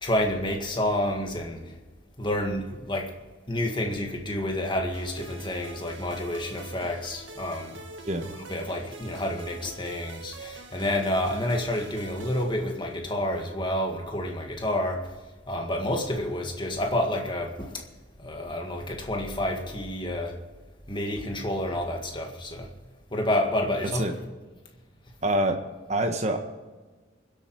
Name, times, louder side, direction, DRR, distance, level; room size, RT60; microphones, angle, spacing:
voice 1, 0.0-1.7 2.2-3.1 3.5-7.8 8.3-15.1 15.5-17.8 18.2-20.4 20.9-22.7 23.1-24.1, left 1 dB, 25° left, 2 dB, 1.8 m, -29 dB
sound 1, 4.9-13.2, right 3 dB, 70° right, 1.9 m, -45 dB
voice 2, 25.2-25.6 25.9-26.4, right 1 dB, 35° right, 6 dB, 1.5 m, -25 dB
23.0 x 8.4 x 4.7 m, 1.3 s
head